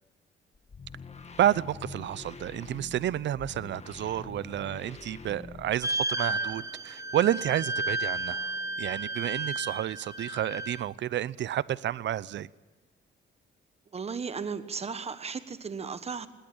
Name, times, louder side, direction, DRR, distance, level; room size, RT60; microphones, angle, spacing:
sound 1, 0.5-6.0, left 4 dB, 35° left, 1.9 m, -45 dB
voice 1, 1.4-8.4 8.8-12.5, right 11 dB, 70° right, 20 dB, 0.7 m, -30 dB
sound 2, 5.8-10.8, right 2 dB, 15° right, 1.0 m, -33 dB
voice 2, 13.9-16.3, right 5 dB, 30° right, 12 dB, 1.3 m, -35 dB
19.5 x 19.0 x 8.7 m, 1.2 s
cardioid pair, 90°, 20 cm